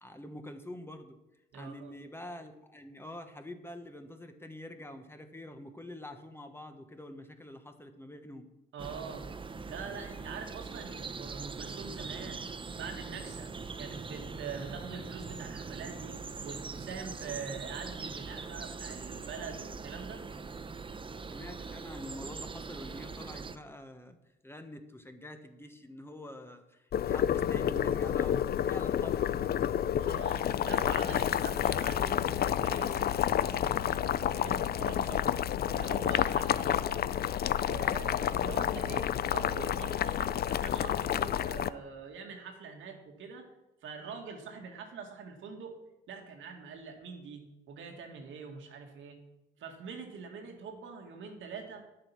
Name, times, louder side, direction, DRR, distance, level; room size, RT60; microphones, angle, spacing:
voice 1, 0.0-1.2 1.5-8.5 21.3-24.2 24.4-29.8, left 1 dB, 10° left, 6 dB, 1.2 m, -46 dB
voice 2, 1.5-1.9 8.7-9.3 9.7-12.4 12.8-13.5 13.8-20.2 30.0-35.3 35.6-37.1 37.4-43.5 43.8-45.8 46.1-49.2 49.6-51.8, right 5 dB, 80° right, 3 dB, 2.1 m, -44 dB
sound 1, 8.8-23.6, right 4 dB, 25° right, 0.7 m, -42 dB
Boiling, 26.9-41.7, left 10 dB, 50° left, 0.5 m, -30 dB
10.5 x 7.8 x 6.0 m, 0.93 s
cardioid pair, 90°, 20 cm